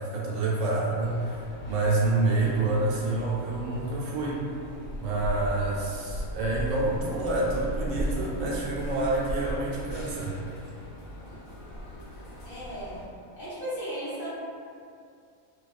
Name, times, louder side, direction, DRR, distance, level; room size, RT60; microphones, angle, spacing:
voice 1, 0.0-4.4 5.0-10.4, right 2 dB, 70° right, -5 dB, 0.9 m, -28 dB
sound 1, 1.0-13.0, equal, 85° left, 1.1 m, -37 dB
voice 2, 12.4-13.0 13.4-14.3, equal, 40° left, -13 dB, 0.8 m, -36 dB
2.3 x 2.2 x 2.4 m, 2.4 s
omnidirectional pair, 1.5 m